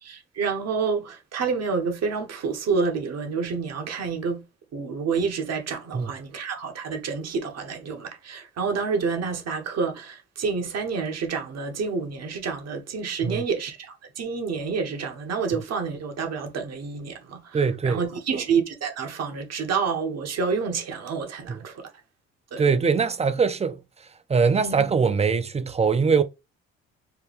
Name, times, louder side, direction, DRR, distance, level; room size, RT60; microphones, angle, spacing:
voice 1, 0.0-4.4 4.7-21.9 22.5-22.6 24.6-24.8, right 5 dB, 60° right, 1.2 m, -28 dB
voice 2, 17.5-18.0 21.5-21.6 22.6-23.8 24.3-26.2, right 5 dB, 20° right, 0.6 m, -22 dB
4.6 x 2.2 x 3.4 m
cardioid pair, 80°, 29 cm